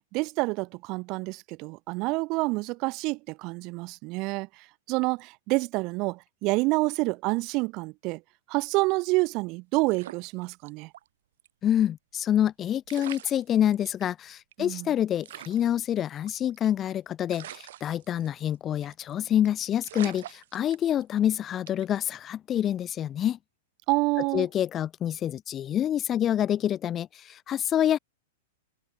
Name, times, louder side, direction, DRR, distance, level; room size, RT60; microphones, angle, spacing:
voice 1, 0.1-8.2 8.5-10.9 14.6-14.9 23.9-24.5, right 24 dB, 40° right, 1.4 m, -28 dB
sound 1, 9.9-11.1 11.4-11.5 12.5-12.6 12.9-14.0 14.5-14.6 14.8-14.9 15.2-16.8 17.3-18.6 18.8-19.1 19.5-19.6 19.8-21.2 21.7-22.0, right 13 dB, 65° right, 5.9 m, -44 dB
voice 2, 11.6-23.4 24.3-28.0, left 10 dB, 25° left, 0.7 m, -27 dB
hypercardioid pair, 135°, 0 cm